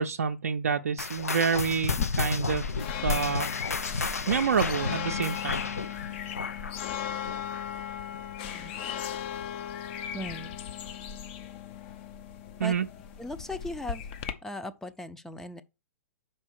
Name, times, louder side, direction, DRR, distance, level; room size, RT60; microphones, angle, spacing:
voice 1, 0.0-2.7 3.0-3.5 4.3-5.6 12.6-12.9, right 6 dB, 80° right, 0.5 m, -28 dB
sound 1, 1.0-7.8 8.1-8.4 9.0-9.1 9.9-10.0, left 4 dB, 90° left, 0.6 m, -33 dB
sound 2, 1.9-14.3, left 8 dB, 50° left, 0.8 m, -36 dB
voice 2, 10.1-10.6 12.6-12.7 13.2-14.1 14.4-15.6, left 1 dB, 5° left, 0.5 m, -38 dB
5.5 x 4.5 x 6.3 m
hypercardioid pair, 115°, 8 cm